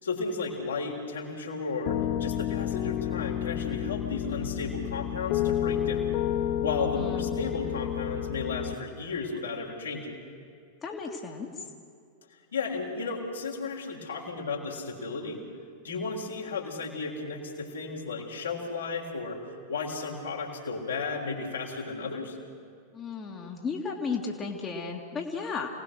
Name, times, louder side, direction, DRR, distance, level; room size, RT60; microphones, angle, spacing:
voice 1, 0.0-6.2 6.6-10.2 12.5-15.4 15.8-19.4 19.7-22.4, left 4 dB, 70° left, -1 dB, 3.7 m, -34 dB
Piano, 1.9-8.7, left 11 dB, 45° left, 0.7 m, -30 dB
voice 2, 6.9-7.5 10.8-11.7 22.9-25.7, left 5 dB, 20° left, 1 dB, 2.1 m, -34 dB
27.5 x 18.5 x 6.5 m, 2.4 s
figure-of-eight pair, 90°, 0 cm